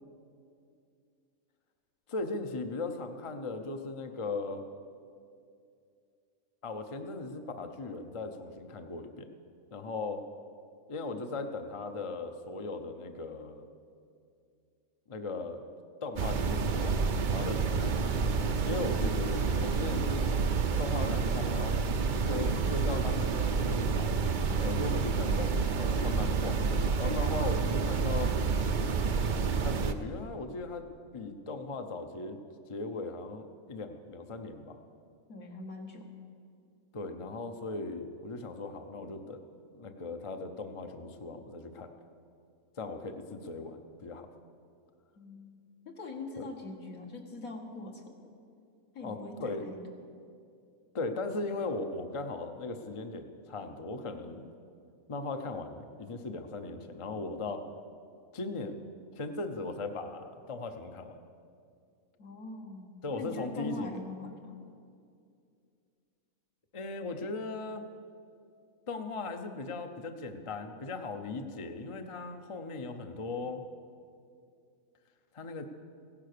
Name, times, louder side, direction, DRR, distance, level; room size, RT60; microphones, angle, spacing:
voice 1, 2.1-4.6 6.6-9.3 9.7-10.2 10.9-13.7 15.1-15.6 16.0-17.0 17.3-18.2 18.6-20.3 20.8-21.8 22.2-24.1 24.6-26.6 27.0-28.3 29.6-30.8 31.1-32.4 32.7-34.8 36.9-39.4 39.8-41.9 42.8-44.3 46.4-46.5 49.0-49.7 50.9-54.5 55.1-57.6 58.3-58.8 59.2-61.2 63.0-64.0 66.7-67.8 68.9-73.6 75.3-75.7, left 3 dB, 30° left, 6 dB, 0.6 m, -38 dB
sound 1, 16.2-29.9, right 5 dB, 50° right, 0.6 m, -29 dB
voice 2, 35.3-36.1 45.2-45.6 45.9-48.0 48.9-49.4 49.6-49.8 62.2-64.6, left 2 dB, 70° left, 2 dB, 2.1 m, -42 dB
16.0 x 10.5 x 6.7 m, 2.4 s
omnidirectional pair, 1.5 m